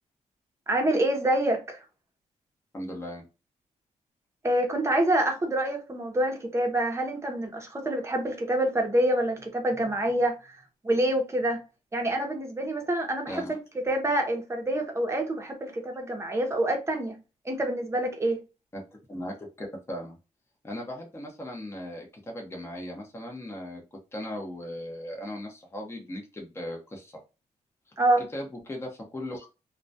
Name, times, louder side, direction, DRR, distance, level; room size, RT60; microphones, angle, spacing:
voice 1, 0.7-1.8 4.4-10.6 10.8-11.6 11.9-13.6 13.9-18.4 28.0-28.2, right 1 dB, 20° right, 0.7 m, -26 dB
voice 2, 2.7-3.2 13.3-13.5 18.7-18.8 19.1-20.2 20.6-27.2 28.2-29.5, left 1 dB, 20° left, 0.8 m, -38 dB
2.2 x 2.2 x 2.6 m
cardioid pair, 115°, 13 cm